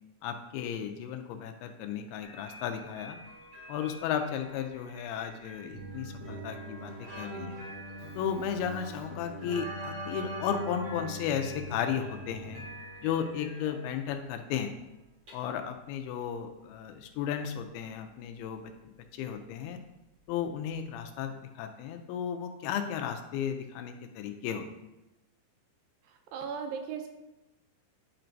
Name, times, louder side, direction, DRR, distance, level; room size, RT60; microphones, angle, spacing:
voice 1, 0.2-3.2 3.7-7.6 8.2-12.6 13.0-14.7 15.3-18.7 19.2-19.8 20.3-24.7, left 8 dB, 85° left, 6 dB, 2.5 m, -34 dB
sound 1, 2.2-21.2, right 1 dB, 45° right, 2.1 m, -51 dB
Keyboard (musical), 5.7-13.0, right 1 dB, 30° left, 2.5 m, -41 dB
voice 2, 26.1-27.1, right 6 dB, 80° right, 5 dB, 2.2 m, -37 dB
10.5 x 4.4 x 2.6 m, 0.96 s
omnidirectional pair, 4.5 m